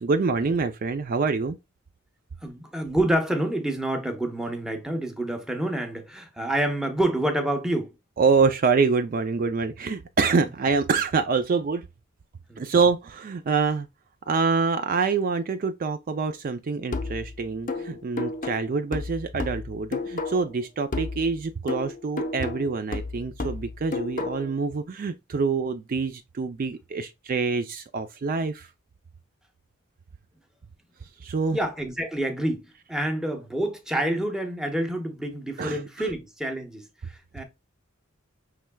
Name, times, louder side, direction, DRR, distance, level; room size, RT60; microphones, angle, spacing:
voice 1, 0.0-1.6 8.2-11.8 12.6-13.9 14.3-28.7 31.2-31.6 35.6-36.1, right 4 dB, 45° right, 0.4 m, -26 dB
voice 2, 2.4-7.9 12.5-12.6 31.5-32.6 32.9-37.4, right 1 dB, 5° right, 0.8 m, -28 dB
sound 1, 16.9-20.6 20.9-24.6, left 3 dB, 40° left, 0.6 m, -32 dB
5.7 x 3.2 x 2.2 m
head